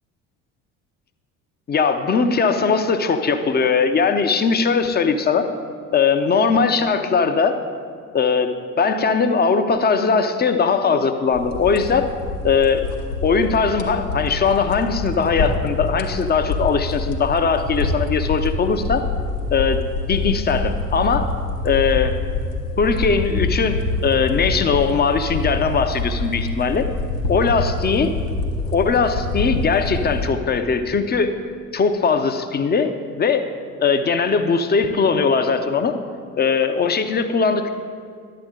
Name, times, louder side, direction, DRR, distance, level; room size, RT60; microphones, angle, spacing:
voice 1, 1.7-5.5 5.9-7.6 8.1-12.1 12.4-12.9 13.2-19.0 19.5-19.8 20.1-21.3 21.6-22.2 22.8-26.9 27.3-28.1 28.7-31.3 31.7-33.5 33.8-36.0 36.4-37.7, left 5 dB, 20° left, 8 dB, 0.6 m, -20 dB
sound 1, 11.3-30.3, left 2 dB, 80° left, 1.0 m, -26 dB
11.0 x 7.8 x 3.8 m, 2.1 s
figure-of-eight pair, 60°, 46 cm